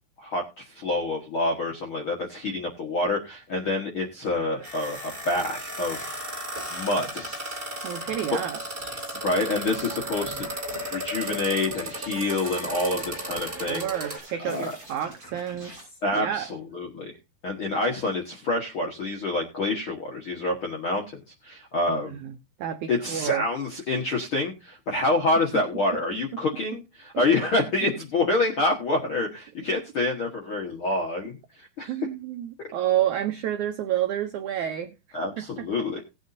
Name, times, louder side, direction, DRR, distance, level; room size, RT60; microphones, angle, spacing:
voice 1, 0.2-6.2 6.7-7.3 8.3-8.4 9.2-10.5 10.9-13.9 14.4-14.7 16.0-17.1 17.4-21.0 21.4-22.2 22.9-31.3 31.6-31.9 35.1-36.0, left 2 dB, 60° left, 1.3 m, -27 dB
sound 1, 4.2-14.2, right 1 dB, 15° right, 2.6 m, -35 dB
sound 2, 5.9-15.8, right 2 dB, 30° right, 7.2 m, -46 dB
voice 2, 7.8-8.6 13.7-16.5 21.9-22.3 22.6-23.5 26.3-26.4 27.1-27.3 31.9-34.9 35.4-36.0, right 11 dB, 85° right, 1.7 m, -30 dB
18.5 x 8.1 x 2.7 m
omnidirectional pair, 4.5 m